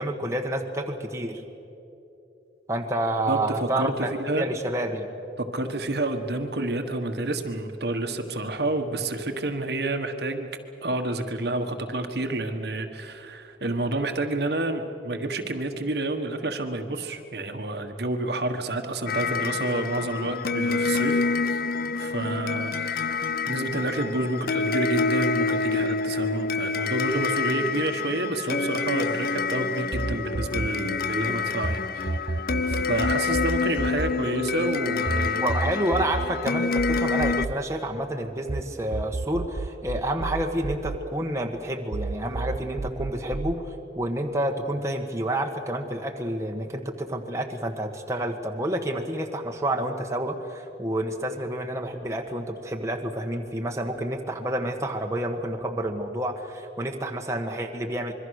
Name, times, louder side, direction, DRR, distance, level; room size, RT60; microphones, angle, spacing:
voice 1, 0.0-1.4 2.7-4.1 4.3-5.1 35.4-58.1, right 1 dB, 15° right, 2 dB, 1.4 m, -29 dB
voice 2, 3.3-4.5 5.4-10.5 10.8-21.6 21.9-35.4, right 2 dB, 60° right, 5 dB, 1.5 m, -29 dB
sound 1, 19.1-37.5, left 4 dB, 55° left, 0.5 m, -27 dB
sound 2, 29.9-31.8 32.1-38.6 38.9-41.6 41.9-43.6, right 3 dB, 40° right, 0.5 m, -31 dB
25.5 x 23.0 x 6.5 m, 2.9 s
head